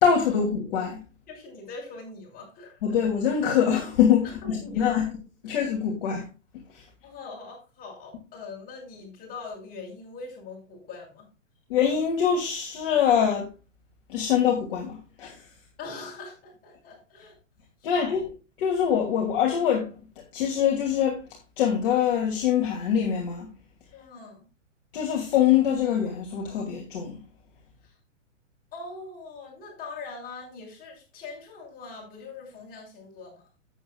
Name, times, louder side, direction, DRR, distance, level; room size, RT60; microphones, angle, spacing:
voice 1, 0.0-1.0 2.8-5.1 5.4-6.2 11.7-13.5 14.1-15.4 17.8-18.3 18.6-19.9 20.3-21.2 21.6-23.5 24.9-27.2, left 8 dB, 45° left, 2.6 m, -24 dB
voice 2, 1.3-3.0 4.2-5.2 5.5-5.6 7.0-11.3 15.8-17.3 17.8-18.2 23.9-24.4 27.8-27.9 28.7-33.4, left 3 dB, 25° left, 6.2 m, -42 dB
13.5 x 8.6 x 2.3 m
figure-of-eight pair, 115°, 38 cm